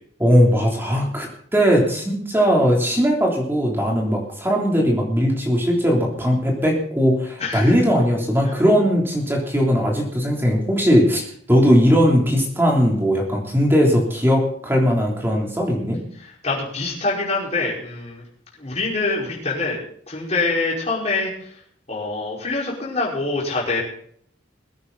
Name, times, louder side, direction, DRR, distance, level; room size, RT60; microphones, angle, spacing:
voice 1, 0.2-1.3 1.5-11.2 11.5-16.0, equal, 10° right, -1 dB, 3.4 m, -19 dB
voice 2, 7.4-7.7 16.4-18.2 18.6-19.8 20.1-21.5 21.9-23.8, left 3 dB, 35° left, -4 dB, 5.1 m, -25 dB
22.5 x 9.5 x 4.1 m, 0.63 s
head